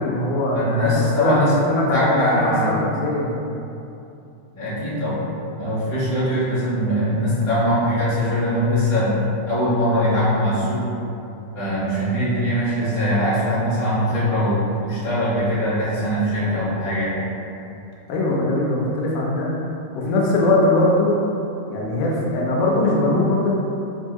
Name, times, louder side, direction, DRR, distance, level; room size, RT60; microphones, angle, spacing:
voice 1, 0.0-0.8 1.2-1.4 1.7-3.4 4.6-4.7 18.1-19.5 20.0-21.1 21.7-23.5, left 2 dB, 90° left, -4 dB, 2.1 m, -21 dB
voice 2, 0.5-1.6 1.9-2.8 4.5-5.2 5.5-10.9 11.5-17.2, equal, 35° left, -13 dB, 0.4 m, -21 dB
5.2 x 2.3 x 2.7 m, 2.7 s
omnidirectional pair, 3.3 m